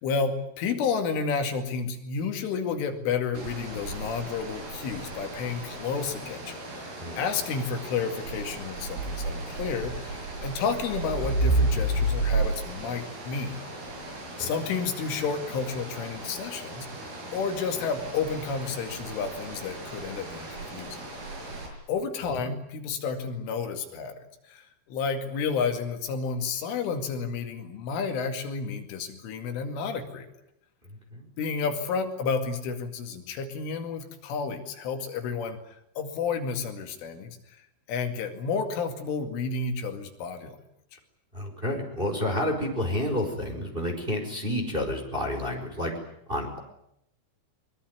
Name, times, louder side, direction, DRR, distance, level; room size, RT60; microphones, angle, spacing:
voice 1, 0.0-13.5 14.4-16.9 17.3-21.0 21.9-24.2 24.4-30.3 31.4-35.6 36.0-37.4 37.9-40.5, left 5 dB, 80° left, 5 dB, 4.8 m, -31 dB
sound 1, 3.3-21.7, right 2 dB, 55° right, 8.5 m, -33 dB
voice 2, 41.3-45.9 46.3-46.6, left 1 dB, 10° right, 2 dB, 4.4 m, -30 dB
23.0 x 23.0 x 9.6 m, 0.78 s
omnidirectional pair, 5.6 m